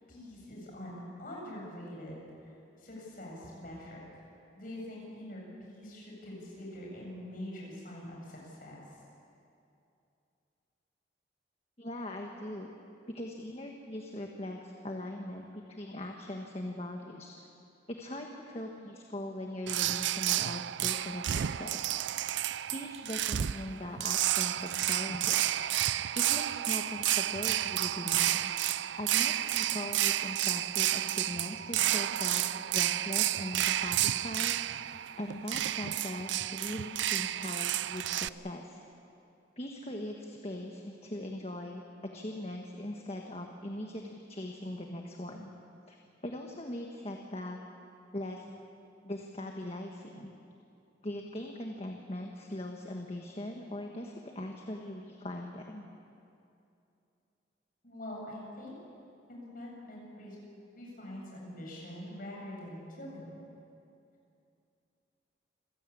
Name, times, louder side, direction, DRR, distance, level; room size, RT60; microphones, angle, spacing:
voice 1, 0.1-4.0 4.5-8.8 57.8-58.7 59.3-60.4 60.7-63.4, left 1 dB, 50° left, -2 dB, 7.7 m, -44 dB
voice 2, 11.8-12.7 13.1-17.5 17.9-21.9 22.7-28.5 29.0-32.4 32.7-34.5 35.2-38.8 39.6-41.8 42.1-45.5 45.9-46.0 46.2-47.6 48.1-48.5 49.0-50.3 51.0-55.9, left 1 dB, 35° left, 2 dB, 1.5 m, -40 dB
sound 1, 19.7-38.3, right 13 dB, 75° right, 0.4 m, -31 dB
27.5 x 16.0 x 8.6 m, 2.7 s
head